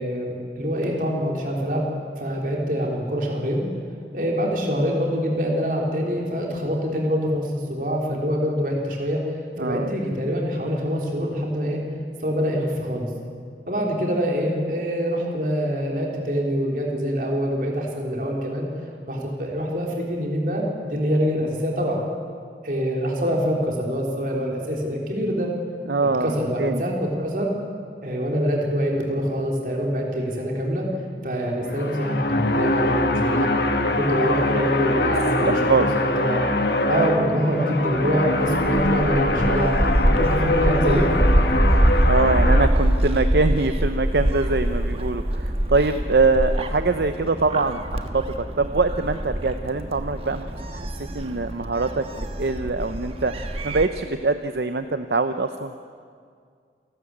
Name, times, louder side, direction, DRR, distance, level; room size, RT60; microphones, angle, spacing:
voice 1, 0.0-3.6 4.1-9.2 9.6-11.8 12.2-13.1 13.7-18.7 19.1-22.0 22.6-25.5 26.2-27.5 28.0-30.9 31.2-33.5 34.0-36.5 36.9-39.8 40.0-41.2, equal, 50° right, -1 dB, 3.9 m, -25 dB
voice 2, 9.6-9.9 25.9-26.8 35.4-35.8 42.1-50.5 50.7-50.9 51.1-53.3 53.6-55.7, right 3 dB, 70° right, 9 dB, 0.7 m, -23 dB
sound 1, 31.6-42.7, left 1 dB, 65° left, 1.6 m, -23 dB
Gull seagull, 38.4-53.9, equal, 35° right, 1.3 m, -24 dB
28.5 x 13.0 x 8.6 m, 2.2 s
head